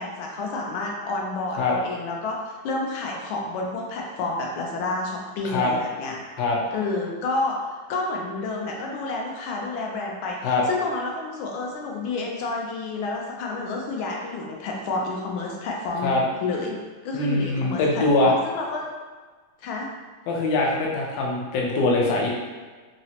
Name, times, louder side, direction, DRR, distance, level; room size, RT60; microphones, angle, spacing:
voice 1, 0.0-6.2 6.7-16.8 17.0-18.9 19.6-19.9, left 3 dB, 85° left, -1 dB, 1.4 m, -30 dB
voice 2, 17.1-18.3 20.3-22.3, left 2 dB, 70° left, -2 dB, 1.0 m, -22 dB
3.8 x 2.1 x 2.7 m, 1.4 s
omnidirectional pair, 2.2 m